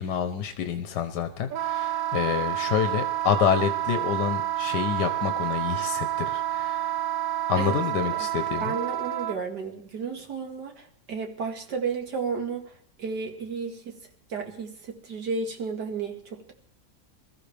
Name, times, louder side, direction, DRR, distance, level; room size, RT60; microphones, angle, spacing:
voice 1, 0.0-6.9 7.5-8.7, left 8 dB, 85° left, 7 dB, 1.5 m, -28 dB
Wind instrument woodwind instrument, 1.5-9.4, right 13 dB, 65° right, 1.2 m, -29 dB
voice 2, 8.6-14.0 14.3-16.5, right 5 dB, 85° right, 4 dB, 2.5 m, -33 dB
22.0 x 13.5 x 3.4 m, 0.67 s
omnidirectional pair, 1.7 m